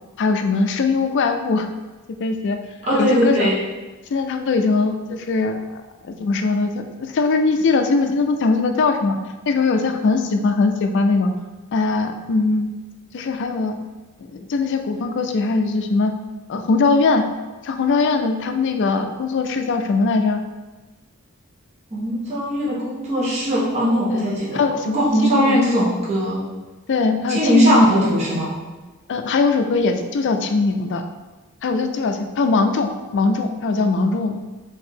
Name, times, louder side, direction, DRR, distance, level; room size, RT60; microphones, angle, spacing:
voice 1, 0.2-1.7 2.2-2.6 2.9-3.5 4.1-5.6 6.0-9.2 9.5-11.3 11.7-12.7 13.1-13.8 14.3-16.1 16.5-17.2 17.6-20.4 24.1-24.2 24.5-25.0 25.3-25.6 26.9-27.9 29.1-31.0 31.6-34.4, left 3 dB, 55° left, 6 dB, 0.4 m, -20 dB
voice 2, 2.8-3.6 21.9-26.4 27.3-28.5, equal, 30° right, -8 dB, 1.0 m, -19 dB
4.7 x 2.7 x 3.7 m, 1.2 s
head